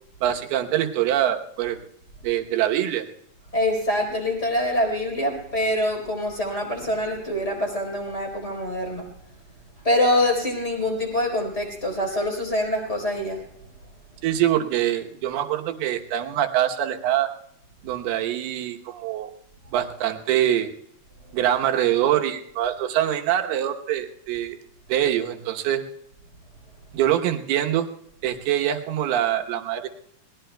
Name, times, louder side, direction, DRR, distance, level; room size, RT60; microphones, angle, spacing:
voice 1, 0.2-1.8 2.2-3.1 14.2-17.3 17.8-19.3 19.7-20.7 21.3-24.6 24.9-25.9 26.9-27.9 28.2-29.9, right 11 dB, 75° right, 4 dB, 2.9 m, -24 dB
voice 2, 3.5-9.1 9.8-13.4, left 1 dB, 15° left, 1 dB, 3.7 m, -25 dB
28.0 x 20.0 x 2.2 m, 0.74 s
omnidirectional pair, 4.7 m